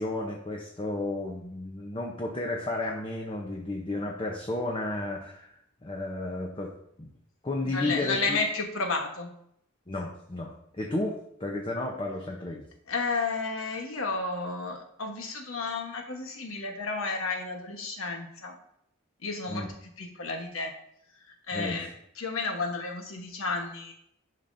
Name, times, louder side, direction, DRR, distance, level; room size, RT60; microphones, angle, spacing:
voice 1, 0.0-5.5 5.8-6.7 7.0-7.1 7.4-8.4 9.9-12.6 19.5-19.7 21.5-21.9, left 2 dB, 25° left, 0 dB, 0.7 m, -33 dB
voice 2, 7.6-9.3 12.9-18.6 19.2-19.6 20.0-20.7 21.2-23.9, left 3 dB, 80° left, 3 dB, 1.2 m, -32 dB
10.5 x 5.7 x 2.7 m, 0.73 s
head